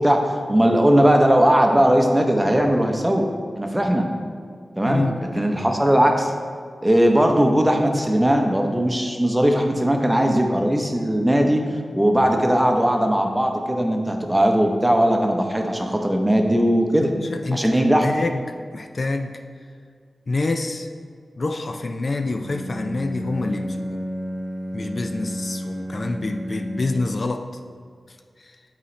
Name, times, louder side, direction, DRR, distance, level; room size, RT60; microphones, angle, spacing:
voice 1, 0.0-3.2 3.6-4.0 4.8-5.1 5.3-6.3 6.8-11.6 11.9-17.1 17.5-18.1, equal, 10° right, 3 dB, 0.7 m, -19 dB
voice 2, 4.9-5.2 17.0-18.4 18.7-19.3 20.3-20.9 21.4-24.1 24.7-27.5 28.4-28.6, left 3 dB, 50° left, 6 dB, 0.3 m, -27 dB
Bowed string instrument, 22.2-27.3, equal, 65° right, 0.9 m, -31 dB
8.2 x 4.1 x 3.2 m, 2.1 s
wide cardioid pair, 75°, 0 cm